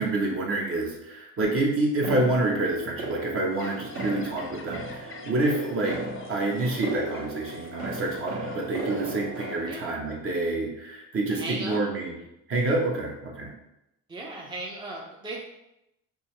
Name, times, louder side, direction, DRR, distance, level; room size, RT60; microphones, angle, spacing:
voice 1, 0.0-6.0 6.3-12.1 12.5-13.5, right 2 dB, 40° right, -1 dB, 1.1 m, -27 dB
sound 1, 2.0-9.7, right 2 dB, 55° right, 1.4 m, -36 dB
sound 2, 3.5-9.1, left 4 dB, 40° left, 0.6 m, -46 dB
voice 2, 11.3-11.9 14.1-15.4, right 2 dB, 15° right, -2 dB, 0.7 m, -36 dB
5.3 x 2.1 x 3.2 m, 0.86 s
supercardioid pair, 85°, 34 cm